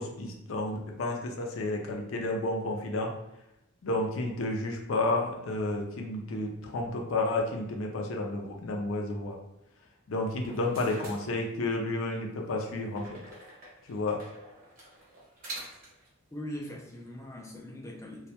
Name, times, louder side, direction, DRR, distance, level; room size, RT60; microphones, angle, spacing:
voice 1, 0.0-3.1 3.8-9.4 10.1-13.2 13.8-14.2, left 2 dB, 75° left, 1 dB, 0.5 m, -31 dB
sound 1, 10.3-11.9 12.9-16.1, right 2 dB, 45° right, 0.8 m, -47 dB
voice 2, 16.3-18.3, left 1 dB, 15° left, -1 dB, 0.3 m, -41 dB
2.2 x 2.1 x 2.8 m, 0.87 s
head